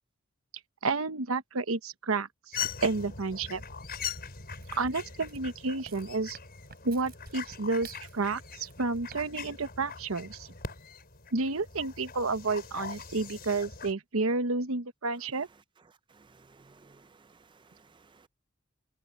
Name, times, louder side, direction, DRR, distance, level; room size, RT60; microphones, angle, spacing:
voice 1, 0.8-2.6 2.8-3.6 4.7-6.4 6.8-10.5 11.3-15.5, right 3 dB, 80° right, 1.1 m, -31 dB
sound 1, 2.5-13.9, left 7 dB, 50° left, 5.8 m, -41 dB
sound 2, 4.0-9.2 9.5-9.7, right 5 dB, 50° right, 6.4 m, -53 dB
voice 2, 16.1-18.3, right 4 dB, 25° right, 0.5 m, -59 dB
head